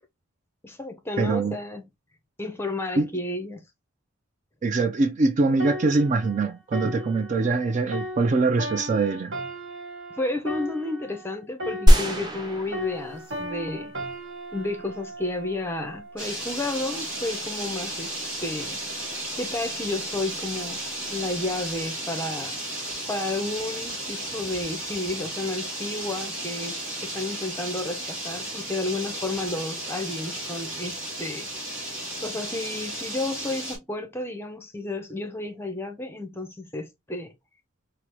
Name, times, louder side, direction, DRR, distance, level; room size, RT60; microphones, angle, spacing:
voice 1, 0.6-1.8 2.4-3.6 10.2-13.9 14.5-18.8 19.4-20.8 21.1-22.6 23.1-31.5 32.2-37.3, left 2 dB, 10° left, 0.6 m, -32 dB
voice 2, 1.2-1.6 3.0-3.1 4.6-9.3, right 3 dB, 35° right, 0.3 m, -23 dB
sound 1, 5.6-12.5 12.7-16.3 16.9-17.2, equal, 60° right, 1.4 m, -37 dB
sound 2, 11.9-13.6 14.1-14.2, equal, 20° right, 0.8 m, -20 dB
sound 3, 16.2-33.8, right 1 dB, 5° right, 2.1 m, -34 dB
4.8 x 2.0 x 2.9 m
head